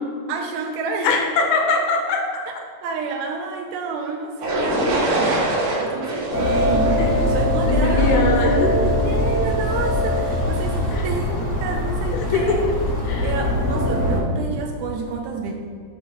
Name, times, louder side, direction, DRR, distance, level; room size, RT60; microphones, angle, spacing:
voice 1, 0.3-1.2 2.8-12.7 13.1-15.6, right 4 dB, 80° right, 3 dB, 2.2 m, -29 dB
voice 2, 1.0-2.2 7.0-7.1 7.7-8.7 10.9-11.1 12.3-12.7 13.1-13.5, left 4 dB, 85° left, 3 dB, 2.5 m, -22 dB
sound 1, 4.4-8.3, right 1 dB, 65° right, 2.8 m, -24 dB
sound 2, 6.3-14.2, left 1 dB, 60° left, 0.8 m, -21 dB
7.8 x 3.1 x 5.8 m, 2.2 s
omnidirectional pair, 4.6 m